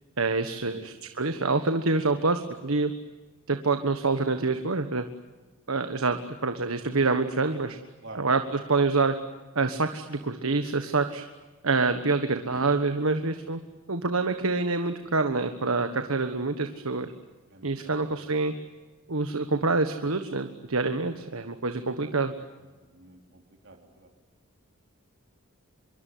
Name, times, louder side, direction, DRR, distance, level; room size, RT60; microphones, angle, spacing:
voice 1, 0.2-2.9 3.5-5.0 5.7-7.8 8.1-9.1 9.5-11.2 11.6-13.6 13.9-17.1 17.6-18.5 19.1-22.3, right 3 dB, 85° right, 8 dB, 1.4 m, -26 dB
voice 2, 17.5-18.0 22.9-24.1, right 2 dB, 55° right, 2 dB, 3.6 m, -48 dB
25.5 x 23.0 x 9.4 m, 1.3 s
head